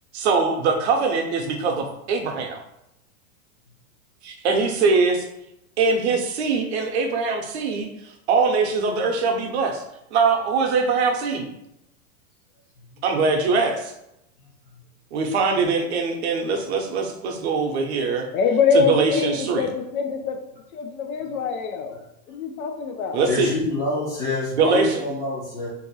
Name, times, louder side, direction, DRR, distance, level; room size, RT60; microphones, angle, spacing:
voice 1, 0.1-2.6 4.2-5.3 5.8-7.9 8.3-9.8 10.1-11.5 13.0-13.9 15.1-18.3 18.7-19.7 23.1-23.5 24.5-25.0, right 4 dB, 50° right, 3 dB, 0.6 m, -22 dB
voice 2, 18.3-20.4 20.7-22.0 22.3-23.2, left 5 dB, 80° left, 4 dB, 0.7 m, -24 dB
voice 3, 23.3-25.7, left 2 dB, 10° left, -7 dB, 0.4 m, -26 dB
2.6 x 2.4 x 4.0 m, 0.83 s
supercardioid pair, 160°, 42 cm